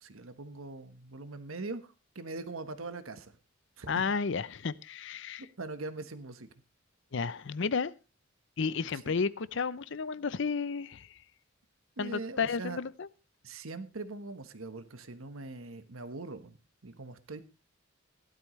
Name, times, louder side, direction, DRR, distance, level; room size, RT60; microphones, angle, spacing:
voice 1, 0.0-3.3 3.8-3.9 5.4-6.5 9.0-9.1 12.0-12.8 13.4-16.6 16.8-17.4, right 3 dB, 85° right, 1.2 m, -42 dB
voice 2, 3.9-5.5 7.1-7.9 8.6-11.2 12.0-13.1, left 5 dB, 60° left, 0.6 m, -32 dB
16.0 x 12.0 x 3.1 m
head